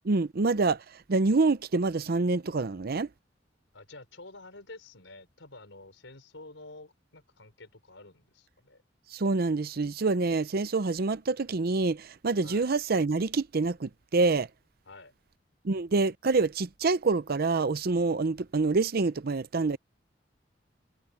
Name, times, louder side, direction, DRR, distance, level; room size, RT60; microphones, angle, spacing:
voice 1, 0.0-0.8 1.1-3.1 9.1-14.5 15.6-19.8, right 3 dB, 55° right, 0.6 m, -26 dB
voice 2, 3.7-8.8 12.4-12.7 14.9-15.1, left 2 dB, 85° left, 4.7 m, -49 dB
head